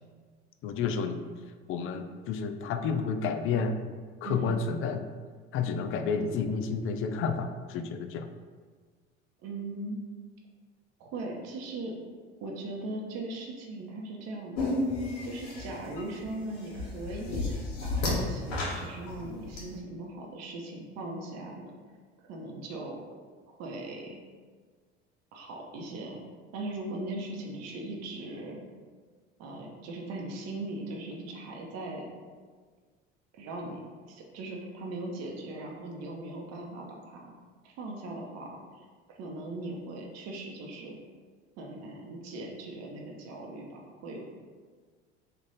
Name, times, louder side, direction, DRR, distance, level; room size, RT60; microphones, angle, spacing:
voice 1, 0.6-1.2 1.7-3.8 4.2-5.0 5.5-8.3, left 5 dB, 45° left, 7 dB, 0.4 m, -30 dB
voice 2, 9.4-10.0 11.0-11.9 12.4-14.7 15.2-21.7 22.3-23.0 23.5-24.2 25.3-26.2 26.5-28.6 29.4-32.1 33.3-37.3 37.6-41.0 41.6-44.3, right 2 dB, 55° right, 0 dB, 0.8 m, -39 dB
sound 1, 14.5-19.6, left 2 dB, 70° left, 1.2 m, -32 dB
3.2 x 2.5 x 3.9 m, 1.5 s
hypercardioid pair, 75°, 31 cm